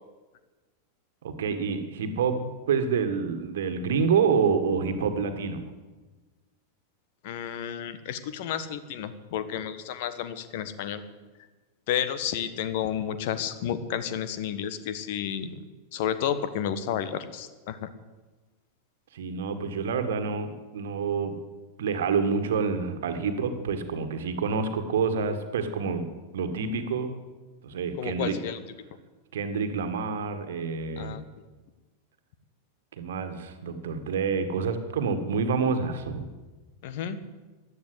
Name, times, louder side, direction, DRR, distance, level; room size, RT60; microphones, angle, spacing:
voice 1, 1.2-5.6 19.1-21.4 21.8-26.0 26.3-27.1 27.6-28.4 29.3-31.2 33.0-36.3, right 5 dB, 60° right, 8 dB, 1.7 m, -27 dB
voice 2, 7.2-11.0 11.9-15.6 15.9-17.9 28.0-28.6 31.0-31.2 36.8-37.2, left 9 dB, 50° left, 13 dB, 1.3 m, -31 dB
15.0 x 11.0 x 8.1 m, 1.2 s
figure-of-eight pair, 90°, 0 cm